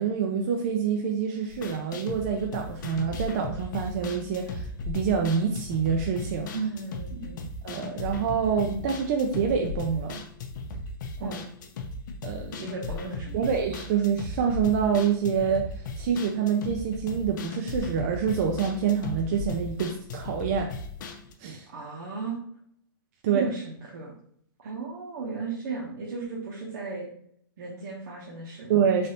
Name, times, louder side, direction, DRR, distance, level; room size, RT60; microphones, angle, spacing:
voice 1, 0.0-6.5 7.6-10.2 11.2-11.4 12.2-12.7 13.3-20.7 21.4-21.7 23.2-23.5 28.7-29.1, right 7 dB, 40° right, 2 dB, 0.4 m, -26 dB
sound 1, 1.5-21.3, left 3 dB, 55° left, 0.5 m, -37 dB
voice 2, 6.5-7.4 11.2-11.4 12.5-13.5 21.7-22.4 23.3-24.1 24.6-27.1 27.6-28.7, right 4 dB, 60° right, -4 dB, 0.8 m, -35 dB
3.3 x 2.6 x 2.7 m, 0.65 s
hypercardioid pair, 160°, 12 cm